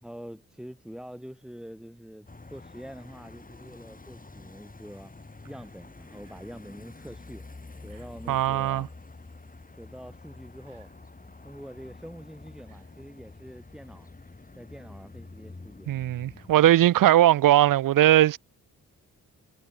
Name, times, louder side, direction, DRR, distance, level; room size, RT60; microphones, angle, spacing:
voice 1, 0.0-5.1 5.5-7.4 7.8-8.9 9.8-10.9 11.2-14.1 14.6-15.9, equal, ahead, 3.0 m, -45 dB
sound 1, 2.3-16.5, left 3 dB, 25° left, 4.3 m, -47 dB
voice 2, 8.3-8.9 15.9-18.4, right 13 dB, 70° right, 0.6 m, -19 dB
cardioid pair, 70°, 34 cm